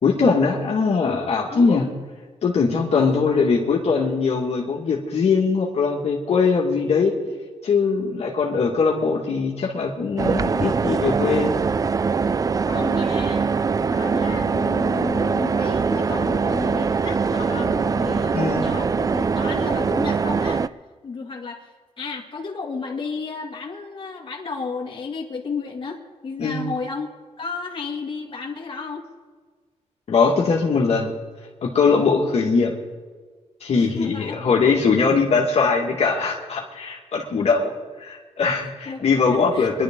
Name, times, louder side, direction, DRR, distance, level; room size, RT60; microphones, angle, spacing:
voice 1, 0.0-1.8 2.4-7.1 7.6-11.6 18.3-18.7 26.4-26.7 30.1-31.1 31.6-32.7 33.6-39.8, left 5 dB, 60° left, -2 dB, 1.9 m, -21 dB
voice 2, 1.5-1.9 2.9-3.4 12.6-13.5 13.9-20.7 21.0-21.7 22.0-27.1 27.4-29.0 33.8-34.4 38.6-39.8, left 4 dB, 45° left, 0 dB, 2.2 m, -32 dB
sound 1, 10.2-20.7, right 5 dB, 30° right, 0.3 m, -22 dB
23.5 x 11.5 x 3.7 m, 1.5 s
wide cardioid pair, 120°, 12 cm